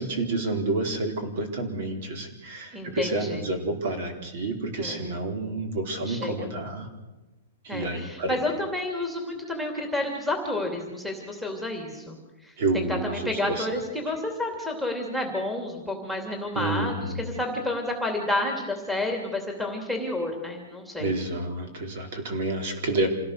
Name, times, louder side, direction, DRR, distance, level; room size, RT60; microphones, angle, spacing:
voice 1, 0.0-6.9 7.6-8.4 12.6-13.7 16.5-17.4 21.0-23.1, right 2 dB, 50° right, 5 dB, 4.1 m, -29 dB
voice 2, 2.7-3.4 4.8-5.1 6.1-6.5 7.7-12.2 12.7-21.1, left 2 dB, 5° right, 1 dB, 2.8 m, -30 dB
27.0 x 17.0 x 6.7 m, 1.1 s
hypercardioid pair, 170°, 0 cm